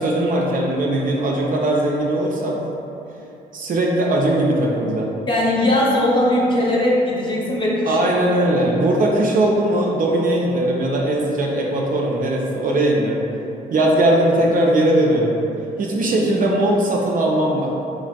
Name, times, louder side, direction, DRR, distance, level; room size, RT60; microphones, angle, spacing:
voice 1, 0.0-2.6 3.5-5.1 7.9-13.3 13.7-15.4 15.8-17.7, right 1 dB, 45° right, -2 dB, 0.4 m, -19 dB
voice 2, 5.3-8.0 8.4-8.5, left 1 dB, 25° left, -5 dB, 0.8 m, -19 dB
3.2 x 2.4 x 2.2 m, 2.6 s
hypercardioid pair, 55°, 20 cm